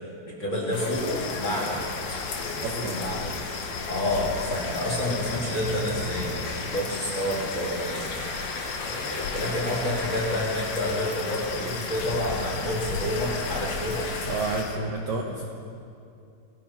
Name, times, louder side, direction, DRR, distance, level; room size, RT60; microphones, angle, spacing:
voice 1, 0.3-1.8 2.1-3.3 3.9-8.5 8.8-14.1, left 1 dB, 30° left, -4 dB, 3.1 m, -29 dB
sound 1, 0.7-14.6, left 3 dB, 50° left, 2.9 m, -36 dB
sound 2, 0.9-14.8, left 5 dB, 70° left, 2.5 m, -36 dB
voice 2, 2.6-3.0 14.3-15.4, right 3 dB, 65° right, 1 dB, 2.3 m, -30 dB
sound 3, 3.9-6.5, right 1 dB, 50° right, 9.3 m, -40 dB
27.5 x 18.0 x 5.8 m, 2.5 s
omnidirectional pair, 5.5 m